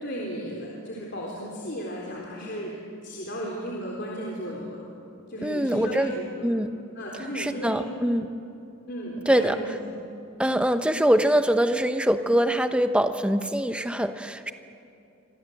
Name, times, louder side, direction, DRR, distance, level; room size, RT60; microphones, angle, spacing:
voice 1, 0.0-2.8 3.0-4.8 5.3-6.5 7.0-8.1 8.9-9.9, equal, 50° left, -3 dB, 3.8 m, -35 dB
voice 2, 5.4-6.1 6.4-6.8 7.3-8.3 9.3-9.6 10.4-14.5, equal, 5° right, 8 dB, 0.9 m, -23 dB
29.0 x 25.0 x 7.9 m, 2.7 s
head